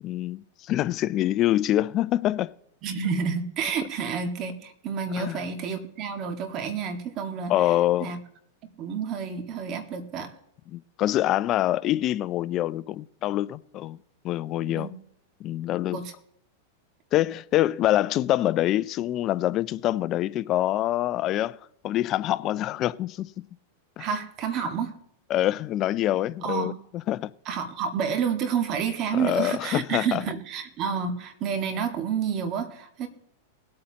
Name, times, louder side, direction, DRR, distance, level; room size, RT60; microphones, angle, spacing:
voice 1, 0.0-2.5 5.2-5.4 7.5-8.1 10.7-14.0 14.2-14.9 15.4-16.0 17.1-21.6 21.8-23.3 24.0-24.1 25.3-26.7 27.1-27.3 29.2-30.2, left 14 dB, 35° left, 0.4 m, -25 dB
voice 2, 2.8-7.5 8.0-8.2 8.8-10.3 14.6-14.9 15.9-16.1 24.0-24.9 26.4-26.7 27.5-33.1, right 6 dB, 40° right, 1.8 m, -29 dB
20.5 x 8.6 x 2.9 m
hypercardioid pair, 130°, 0 cm